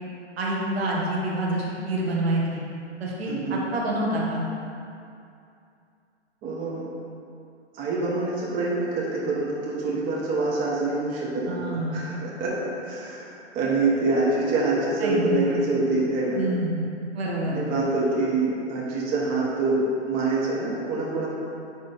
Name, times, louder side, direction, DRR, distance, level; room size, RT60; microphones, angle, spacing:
voice 1, 0.4-2.6 3.0-4.4 11.5-12.1 15.0-15.6 16.3-16.9 17.1-17.6, right 1 dB, 60° right, -3 dB, 1.3 m, -27 dB
voice 2, 6.4-6.8 7.7-16.4 17.5-21.3, right 2 dB, 25° right, -5 dB, 1.3 m, -26 dB
10.0 x 3.5 x 3.9 m, 2.6 s
hypercardioid pair, 130°, 35 cm